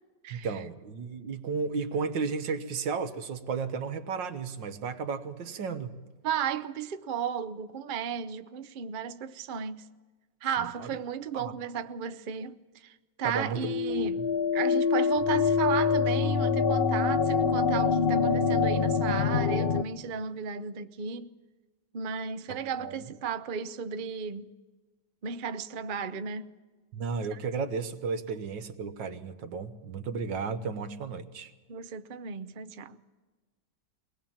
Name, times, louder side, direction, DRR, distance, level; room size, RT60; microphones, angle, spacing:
voice 1, 0.3-6.0 10.6-10.9 11.3-11.6 13.2-14.1 22.5-23.1 26.9-31.5, right 5 dB, 85° right, 1.9 m, -34 dB
voice 2, 6.2-9.9 10.4-21.3 21.9-24.5 25.2-26.5 27.3-27.4 31.7-33.0, right 7 dB, 60° right, 0.5 m, -34 dB
sound 1, 13.6-19.8, left 5 dB, 65° left, 0.5 m, -25 dB
22.5 x 19.5 x 7.3 m
omnidirectional pair, 1.9 m